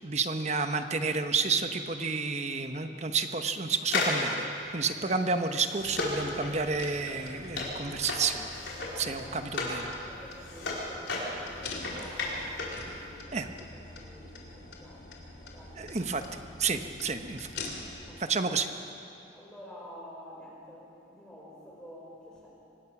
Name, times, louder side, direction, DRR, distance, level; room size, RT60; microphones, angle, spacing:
voice 1, 0.0-4.5 4.7-8.5 9.0-9.9 13.3-13.5 15.8-16.2 16.6-17.5 18.2-18.7, right 4 dB, 35° right, 8 dB, 1.0 m, -30 dB
sound 1, 3.8-9.8 10.2-12.8 13.1-13.2, left 3 dB, 85° left, 4.8 m, -34 dB
sound 2, 5.8-18.2, left 3 dB, 65° left, 3.1 m, -45 dB
voice 2, 8.9-9.7 10.0-15.8 18.0-18.6 19.3-22.5, equal, 5° left, -5 dB, 5.4 m, -50 dB
24.5 x 19.5 x 6.0 m, 2.6 s
head